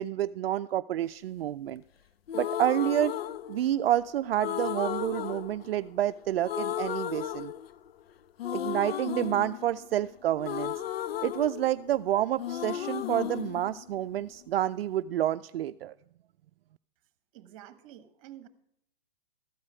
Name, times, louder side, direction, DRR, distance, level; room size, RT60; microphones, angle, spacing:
voice 1, 0.0-1.8 2.3-3.2 3.5-7.5 8.5-10.8 11.2-15.9, right 12 dB, 70° right, 10 dB, 0.5 m, -29 dB
sound 1, 2.3-3.9 4.4-6.1 6.4-8.0 8.4-12.1 12.4-14.4, left 11 dB, 75° left, 0.6 m, -35 dB
voice 2, 17.3-18.5, right 12 dB, 35° right, 11 dB, 1.2 m, -49 dB
13.5 x 4.8 x 8.7 m, 0.74 s
hypercardioid pair, 160°, 30 cm